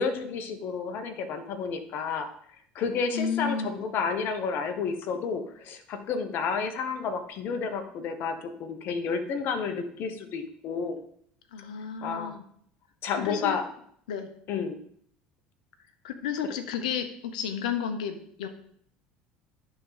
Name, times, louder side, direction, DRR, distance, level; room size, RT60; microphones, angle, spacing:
voice 1, 0.0-2.3 2.7-11.0 12.0-12.3 13.0-13.7 14.5-14.8, left 5 dB, 55° left, 8 dB, 1.2 m, -31 dB
voice 2, 3.1-3.8 11.5-12.4 13.2-13.6 14.1-14.3 16.0-18.5, left 7 dB, 80° left, 8 dB, 0.9 m, -32 dB
11.0 x 3.8 x 5.0 m, 0.64 s
hypercardioid pair, 80°, 4 cm